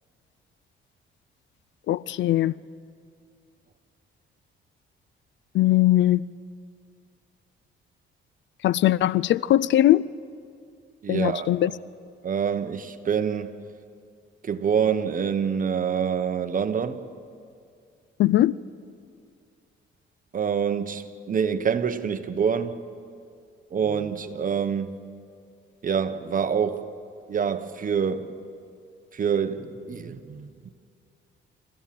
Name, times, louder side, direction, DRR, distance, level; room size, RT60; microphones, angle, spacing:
voice 1, 1.9-2.6 5.5-6.3 8.6-10.1 11.1-11.7 18.2-18.5, left 14 dB, 65° left, 0.4 m, -20 dB
voice 2, 11.0-11.5 12.2-13.5 14.4-17.0 20.3-22.8 23.7-24.9 25.8-26.9 27.3-28.3 29.1-30.5, right 7 dB, 45° right, 1.2 m, -26 dB
29.0 x 15.0 x 7.7 m
cardioid pair, 90°, 20 cm